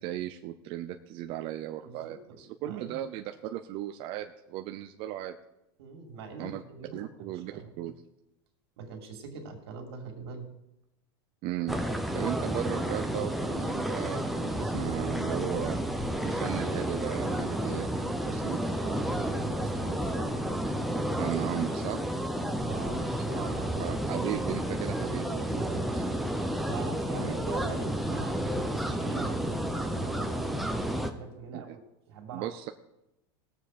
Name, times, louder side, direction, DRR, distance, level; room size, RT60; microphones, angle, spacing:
voice 1, 0.0-5.4 6.4-6.6 6.9-7.9 11.4-11.8 12.1-15.8 16.2-18.6 21.2-22.0 23.8-25.7 25.9-26.0 27.2-27.4 31.5-31.8 32.3-32.7, right 13 dB, 45° right, 6 dB, 0.6 m, -36 dB
voice 2, 1.8-2.2 2.6-3.0 5.8-7.9 8.8-10.5 18.8-20.3 22.6-23.8 25.4-31.8 32.1-32.5, right 4 dB, 80° right, 2 dB, 2.7 m, -43 dB
sound 1, 11.7-31.1, equal, ahead, 0.8 m, -31 dB
19.0 x 7.3 x 4.3 m, 0.89 s
supercardioid pair, 140°, 13 cm